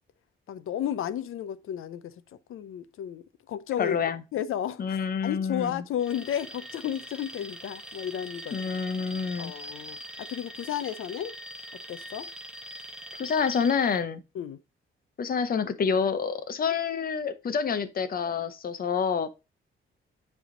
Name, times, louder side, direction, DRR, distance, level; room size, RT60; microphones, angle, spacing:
voice 1, 0.5-2.2 2.5-4.0 4.3-8.6 9.4-11.4 11.9-12.3 14.3-14.6, left 10 dB, 75° left, 0.6 m, -33 dB
voice 2, 3.8-4.2 4.8-5.8 8.5-9.5 13.2-14.2 15.2-19.3, left 6 dB, 45° left, 0.8 m, -28 dB
Alarm, 6.0-14.0, equal, 5° right, 1.1 m, -42 dB
9.9 x 3.5 x 3.7 m
wide cardioid pair, 150°, 21 cm